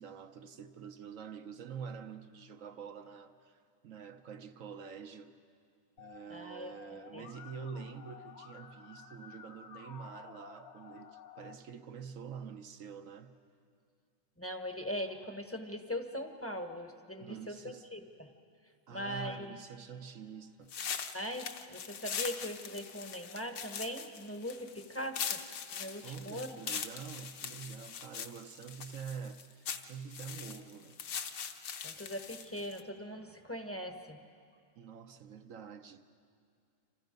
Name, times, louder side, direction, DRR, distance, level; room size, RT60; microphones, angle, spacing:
voice 1, 0.0-5.3 6.0-13.4 17.2-17.9 18.9-20.7 26.0-31.0 34.8-36.1, right 6 dB, 65° right, 0.8 m, -46 dB
Musical instrument, 6.0-11.5, left 7 dB, 85° left, 2.3 m, -53 dB
voice 2, 6.3-6.7 7.1-7.2 14.4-17.6 17.9-18.3 18.9-19.6 21.1-25.4 25.7-26.5 31.8-34.2, equal, 10° left, 0.7 m, -40 dB
sound 1, 20.7-32.8, left 7 dB, 60° left, 1.5 m, -41 dB
29.0 x 26.5 x 5.3 m
omnidirectional pair, 2.2 m